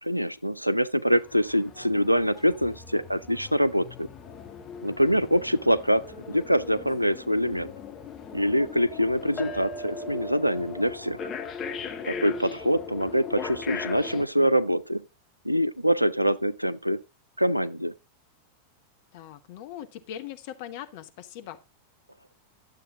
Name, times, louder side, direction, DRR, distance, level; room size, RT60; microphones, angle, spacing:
voice 1, 0.0-4.1 4.8-7.7 8.3-11.2 12.0-15.0 15.4-17.0 17.4-17.9, equal, 90° right, 0.5 m, -24 dB
sound 1, 1.1-14.3, left 5 dB, 25° left, 1.7 m, -39 dB
voice 2, 12.1-12.6 19.1-21.6, left 11 dB, 50° left, 1.3 m, -41 dB
11.5 x 7.6 x 3.7 m
figure-of-eight pair, 90°, 0 cm